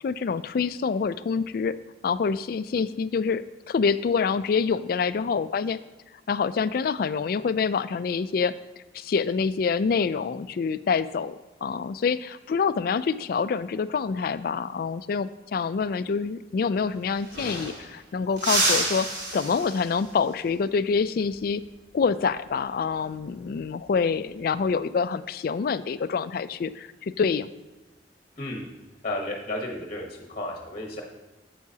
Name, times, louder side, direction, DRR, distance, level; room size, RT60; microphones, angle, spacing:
voice 1, 0.0-1.8 2.0-5.8 6.3-8.5 8.9-11.4 11.6-21.6 21.9-27.5, left 5 dB, 55° left, 14 dB, 0.3 m, -26 dB
sound 1, 16.7-16.8 17.0-18.0 18.4-20.1 22.6-22.9 24.3-24.8, right 2 dB, 90° right, 2.8 m, -29 dB
voice 2, 29.0-31.0, left 1 dB, 35° left, 1 dB, 1.1 m, -33 dB
9.4 x 7.8 x 2.8 m, 1.1 s
head